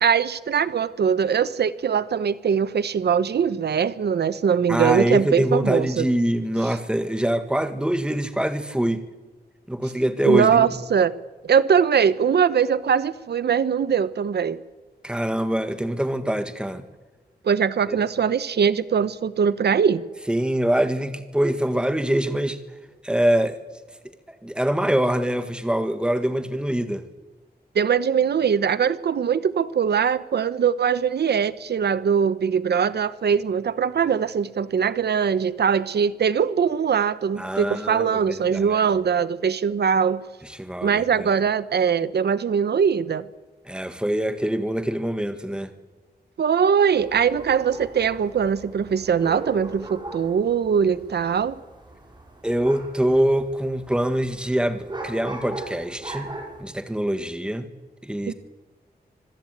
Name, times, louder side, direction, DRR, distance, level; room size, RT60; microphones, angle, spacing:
voice 1, 0.0-6.1 6.6-6.8 10.2-11.1 11.4-14.6 17.4-20.0 27.7-40.2 40.8-43.2 46.4-51.5 58.3-58.4, right 7 dB, 85° right, 16 dB, 0.8 m, -21 dB
voice 2, 4.7-9.0 9.7-10.7 15.0-16.8 17.9-18.0 20.3-22.6 23.0-23.6 24.4-27.0 37.4-38.8 40.6-41.3 43.6-45.7 52.4-56.3 56.6-57.7 58.0-58.3, right 1 dB, 5° right, 9 dB, 1.7 m, -24 dB
sound 1, 47.0-56.6, right 2 dB, 25° right, 5.5 m, -39 dB
25.5 x 14.5 x 9.2 m, 1.2 s
wide cardioid pair, 140°, 17 cm